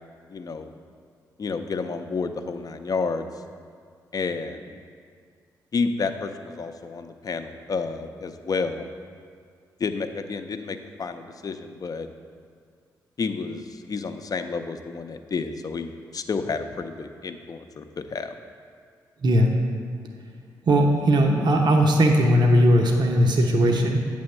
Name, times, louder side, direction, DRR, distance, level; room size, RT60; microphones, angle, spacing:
voice 1, 0.3-0.7 1.4-3.3 4.1-4.8 5.7-8.8 9.8-12.1 13.2-18.3, left 4 dB, 45° left, 7 dB, 0.6 m, -30 dB
voice 2, 19.2-19.5 20.7-24.0, equal, 60° right, 1 dB, 0.8 m, -18 dB
8.6 x 3.5 x 6.5 m, 2.1 s
supercardioid pair, 45°, 9 cm